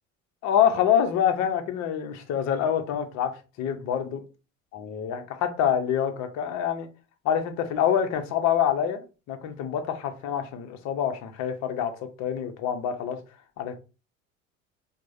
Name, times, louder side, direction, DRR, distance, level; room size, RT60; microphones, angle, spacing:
voice 1, 0.4-3.3 3.6-4.2 4.7-6.9 7.2-11.9 12.2-13.2 13.6-13.8, left 9 dB, 40° left, 0.8 m, -26 dB
4.6 x 2.2 x 2.6 m
figure-of-eight pair, 70°, 41 cm